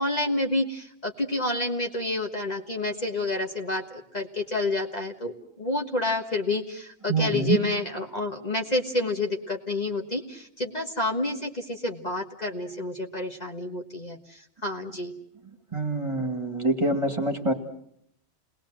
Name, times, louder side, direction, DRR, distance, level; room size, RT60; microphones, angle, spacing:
voice 1, 0.0-15.1, left 2 dB, 30° left, 2 dB, 1.6 m, -29 dB
voice 2, 7.1-7.6 15.7-17.5, right 3 dB, 20° right, 4 dB, 2.1 m, -25 dB
29.0 x 20.5 x 7.7 m, 0.73 s
omnidirectional pair, 1.4 m